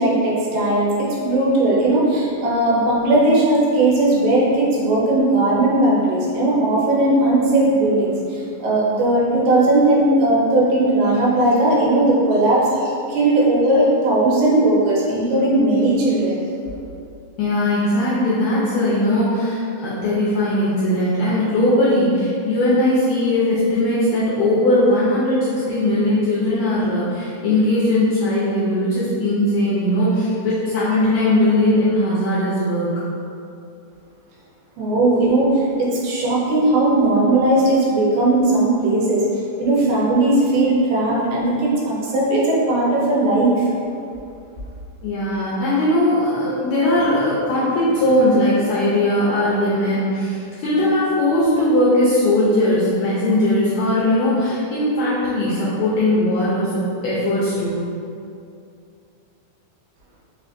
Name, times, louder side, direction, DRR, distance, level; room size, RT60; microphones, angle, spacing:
voice 1, 0.0-16.4 34.8-39.3 39.6-43.7, right 2 dB, 90° right, -5 dB, 2.3 m, -18 dB
voice 2, 17.4-33.0 45.0-57.8, left 1 dB, 80° left, -9 dB, 1.6 m, -19 dB
5.4 x 2.5 x 2.5 m, 2.5 s
omnidirectional pair, 3.7 m